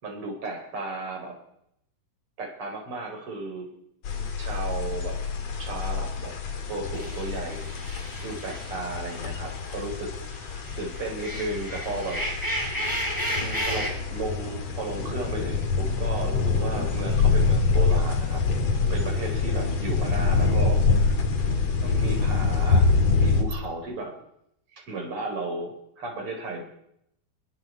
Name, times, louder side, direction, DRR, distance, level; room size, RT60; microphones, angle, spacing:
voice 1, 0.0-1.4 2.4-3.7 4.2-5.2 5.6-6.3 6.7-10.1 10.4-12.2 13.3-18.4 18.9-21.2 21.8-24.2 24.7-26.6, right 2 dB, 30° right, 2 dB, 5.0 m, -34 dB
sound 1, 4.0-23.4, left 4 dB, 45° left, 2.5 m, -26 dB
sound 2, 6.9-9.8 10.2-13.9, equal, 5° left, 5.3 m, -33 dB
26.0 x 21.5 x 4.7 m, 0.77 s
omnidirectional pair, 5.9 m